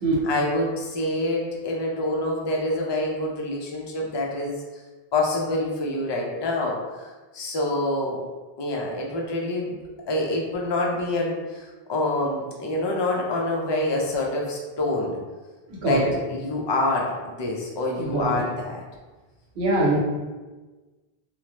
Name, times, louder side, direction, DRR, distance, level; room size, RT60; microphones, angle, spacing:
voice 1, 0.2-4.6 5.1-8.2 8.6-9.8 10.1-15.2 15.8-18.8 19.7-20.0, left 2 dB, 40° left, -1 dB, 0.4 m, -26 dB
voice 2, 15.7-16.1 18.0-18.4 19.6-20.0, right 2 dB, 80° right, -4 dB, 1.1 m, -23 dB
3.2 x 2.0 x 2.9 m, 1.3 s
omnidirectional pair, 1.0 m